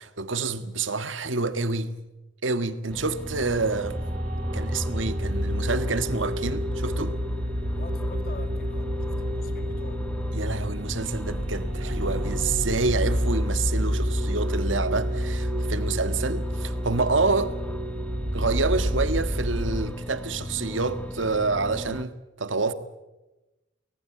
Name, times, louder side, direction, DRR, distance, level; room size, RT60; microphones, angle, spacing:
voice 1, 0.0-2.0 2.4-4.0 4.5-7.2 10.3-17.5 18.3-22.1 22.4-22.7, right 3 dB, 85° right, 1.6 m, -28 dB
sound 1, 2.9-22.0, left 1 dB, 10° left, 0.9 m, -37 dB
sound 2, 3.3-19.9, equal, 40° right, 1.7 m, -29 dB
voice 2, 7.8-10.1, left 3 dB, 50° left, 1.9 m, -46 dB
25.0 x 19.0 x 8.5 m
head